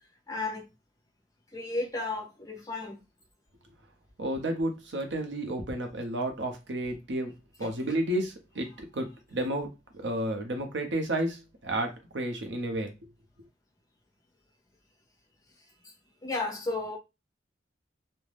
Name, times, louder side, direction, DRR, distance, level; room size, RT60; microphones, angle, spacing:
voice 1, 0.3-0.6 1.5-3.0 7.6-7.7 16.2-17.0, left 2 dB, 20° left, 0.6 m, -33 dB
voice 2, 4.2-7.3 7.6-12.9, right 1 dB, 70° right, 0.7 m, -32 dB
2.4 x 2.1 x 3.3 m
head